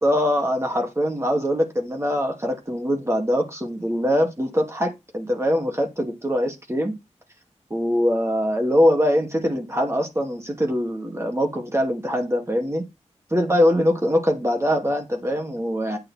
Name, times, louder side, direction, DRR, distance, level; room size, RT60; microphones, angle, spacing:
voice 1, 0.0-6.9 7.7-12.8 13.3-16.0, equal, 20° right, 2.7 m, -22 dB
9.3 x 6.4 x 4.4 m
wide cardioid pair, 65°, 13 cm